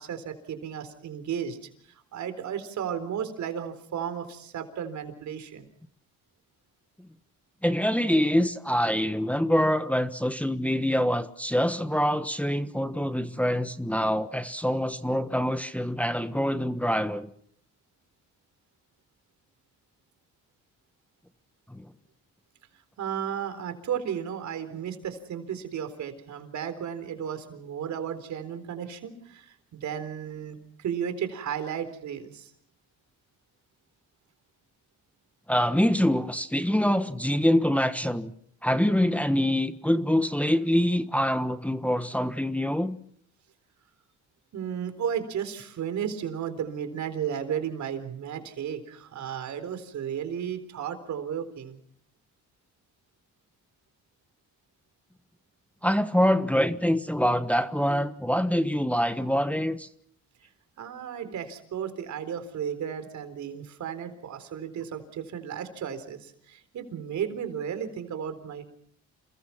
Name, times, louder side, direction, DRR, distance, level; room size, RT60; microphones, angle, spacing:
voice 1, 0.0-1.6 1.9-5.7 23.0-32.5 44.5-51.8 60.8-68.6, right 8 dB, 70° right, 3.9 m, -34 dB
voice 2, 7.6-17.3 21.7-21.9 35.5-38.3 38.6-43.0 55.8-59.9, equal, 5° left, 1.3 m, -25 dB
28.5 x 21.5 x 5.9 m
cardioid pair, 90°, 30 cm